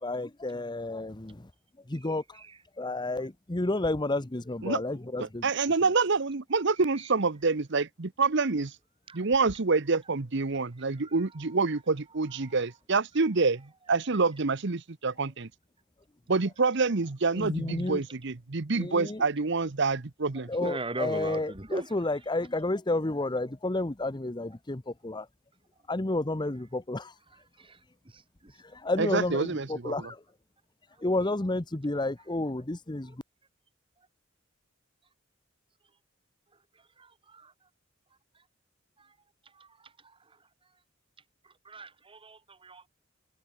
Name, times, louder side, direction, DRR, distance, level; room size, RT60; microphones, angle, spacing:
voice 1, 0.0-1.5 1.9-2.4 2.8-5.5 17.4-18.0 18.8-19.2 20.5-25.3 25.9-27.1 28.7-30.2 31.0-33.2, left 2 dB, 20° left, 0.9 m, -31 dB
voice 2, 5.2-8.7 9.1-15.5 16.3-20.5 29.0-29.9, right 4 dB, 60° right, 1.0 m, -27 dB
voice 3, 20.6-21.9 27.6-27.8 28.1-28.5 37.0-37.5 39.6-39.7 41.6-42.9, right 2 dB, 25° right, 1.8 m, -38 dB
head